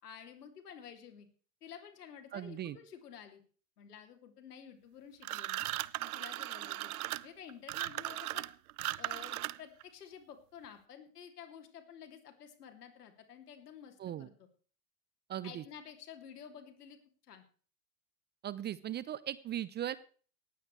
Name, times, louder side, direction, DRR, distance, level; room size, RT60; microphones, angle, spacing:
voice 1, 0.0-1.3 1.6-3.4 3.8-5.7 6.0-6.9 7.2-8.5 9.0-14.5 15.4-17.0 17.3-17.4, left 8 dB, 75° left, 6 dB, 2.9 m, -51 dB
voice 2, 2.3-2.8 14.0-14.3 15.3-15.6 18.4-20.0, right 11 dB, 20° right, 18 dB, 0.6 m, -38 dB
sound 1, 5.2-9.8, right 16 dB, 65° right, 0.7 m, -38 dB
18.5 x 15.0 x 3.2 m, 0.42 s
hypercardioid pair, 90°, 46 cm